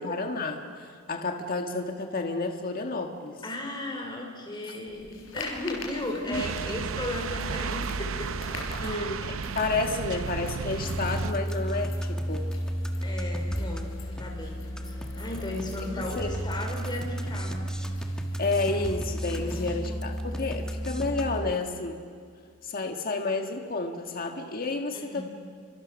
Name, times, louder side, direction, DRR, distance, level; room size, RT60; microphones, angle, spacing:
voice 1, 0.0-3.4 6.3-6.4 8.8-12.5 15.8-16.3 18.4-22.0 22.6-25.2, left 3 dB, 45° left, 4 dB, 1.6 m, -31 dB
voice 2, 3.4-8.3 8.8-9.1 13.0-13.9 14.2-17.7 19.4-19.9 24.9-25.2, left 1 dB, 25° left, 1 dB, 4.7 m, -36 dB
sound 1, 4.9-21.3, left 2 dB, 75° left, 4.9 m, -45 dB
sound 2, 6.3-11.3, right 5 dB, 85° right, 0.7 m, -33 dB
sound 3, 10.8-21.5, equal, 5° left, 1.5 m, -32 dB
29.5 x 25.0 x 6.4 m, 2.2 s
head